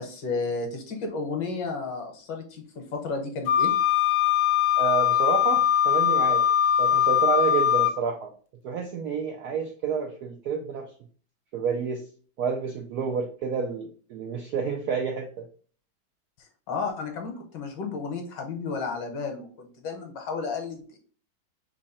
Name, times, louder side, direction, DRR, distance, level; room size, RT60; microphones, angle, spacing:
voice 1, 0.0-3.7 16.7-21.0, left 4 dB, 65° left, 4 dB, 1.5 m, -32 dB
Wind instrument woodwind instrument, 3.5-8.0, left 10 dB, 80° left, 1.4 m, -21 dB
voice 2, 4.8-6.4 6.8-8.3 8.6-10.9 11.5-12.0 12.4-15.5, right 6 dB, 80° right, 3 dB, 0.8 m, -29 dB
3.7 x 3.1 x 4.2 m, 0.43 s
omnidirectional pair, 2.3 m